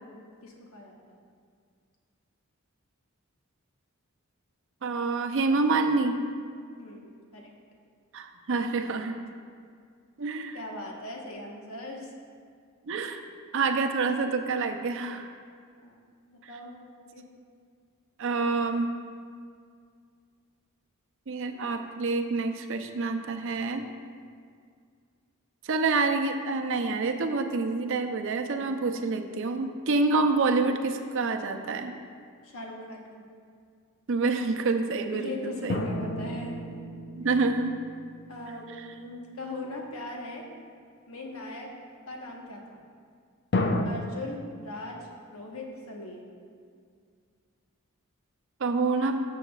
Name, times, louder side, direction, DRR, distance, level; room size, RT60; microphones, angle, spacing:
voice 1, 0.0-1.2 6.8-7.5 10.5-12.1 15.8-16.0 16.3-17.2 32.4-33.2 35.1-36.6 38.3-40.4 41.1-41.7 42.1-42.8 43.8-46.2, left 2 dB, 75° left, 0 dB, 1.2 m, -40 dB
voice 2, 4.8-6.2 8.1-9.2 10.2-10.6 12.9-13.2 13.5-15.3 16.4-16.5 18.2-18.9 21.3-23.8 25.6-31.9 34.1-35.9 37.2-37.8 38.8-38.9 48.6-49.2, right 3 dB, 65° right, 6 dB, 0.6 m, -27 dB
sound 1, 35.7-38.6 43.5-43.8, left 2 dB, 55° left, 0.6 m, -31 dB
12.5 x 6.9 x 2.4 m, 2.2 s
head